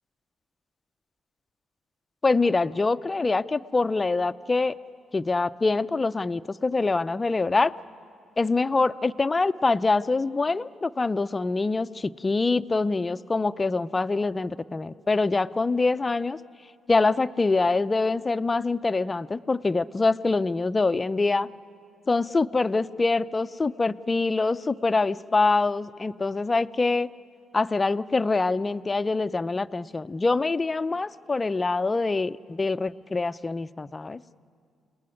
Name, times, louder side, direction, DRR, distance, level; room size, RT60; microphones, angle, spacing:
voice 1, 2.2-4.8 5.1-7.7 8.4-16.4 16.9-21.5 22.1-27.1 27.5-34.2, left 3 dB, 25° left, 13 dB, 0.6 m, -25 dB
30.0 x 19.5 x 9.8 m, 2.3 s
cardioid pair, 90°, 0 cm